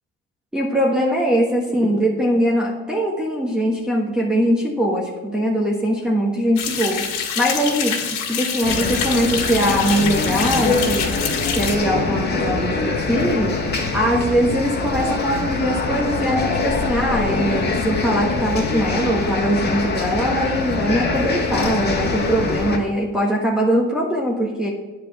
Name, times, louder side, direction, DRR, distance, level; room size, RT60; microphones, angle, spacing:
voice 1, 0.5-7.0 7.3-8.0 8.3-11.1 11.6-13.6 13.9-24.7, equal, ahead, -3 dB, 1.4 m, -21 dB
sound 1, 6.6-11.8, left 7 dB, 85° left, 2.3 m, -26 dB
sound 2, 8.6-22.8, left 3 dB, 30° left, 1.7 m, -23 dB
9.8 x 5.1 x 6.9 m, 1.2 s
cardioid pair, 125°, 31 cm